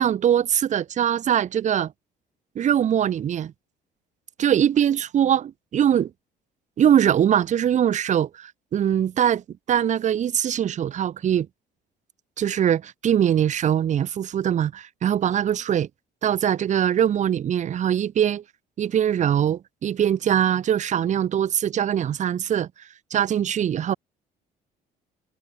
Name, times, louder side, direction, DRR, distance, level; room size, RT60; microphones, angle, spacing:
voice 1, 0.0-1.9 2.6-3.5 4.4-6.1 6.8-9.4 9.7-11.5 12.4-15.9 16.2-18.4 18.8-22.7 23.1-23.9, right 9 dB, 45° right, 0.9 m, -22 dB
cardioid pair, 110°, 17 cm